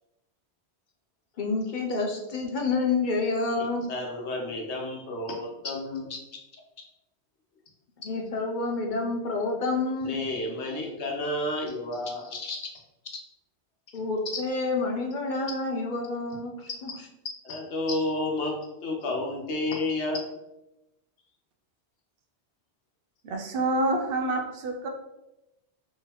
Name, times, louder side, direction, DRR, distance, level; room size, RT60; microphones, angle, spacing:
voice 1, 1.4-3.8 8.0-10.2 12.3-12.7 13.9-16.9, left 3 dB, 55° left, 2 dB, 0.6 m, -28 dB
voice 2, 3.6-6.1 10.0-12.3 17.4-18.6 18.8-20.2, left 2 dB, 80° left, 0 dB, 1.1 m, -31 dB
voice 3, 23.2-24.9, right 2 dB, 65° right, 2 dB, 0.7 m, -27 dB
3.6 x 3.3 x 2.9 m, 0.95 s
omnidirectional pair, 1.1 m